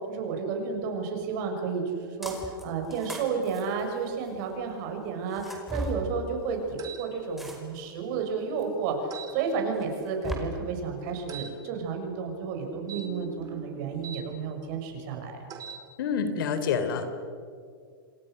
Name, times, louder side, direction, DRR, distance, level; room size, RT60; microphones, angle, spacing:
voice 1, 0.1-15.4, right 5 dB, 55° right, 3 dB, 6.9 m, -32 dB
sound 1, 2.2-2.6 2.9-4.5 5.3-6.0 7.4-7.9 8.6-8.7 9.8-10.4, right 1 dB, ahead, 5.1 m, -37 dB
sound 2, 6.8-7.0 9.1-9.3 11.3-11.5 12.8-14.2 15.5-15.8, right 8 dB, 30° right, 4.5 m, -41 dB
voice 2, 16.0-17.1, left 6 dB, 65° left, 10 dB, 3.5 m, -27 dB
29.0 x 26.0 x 6.6 m, 2.2 s
hypercardioid pair, 115°, 12 cm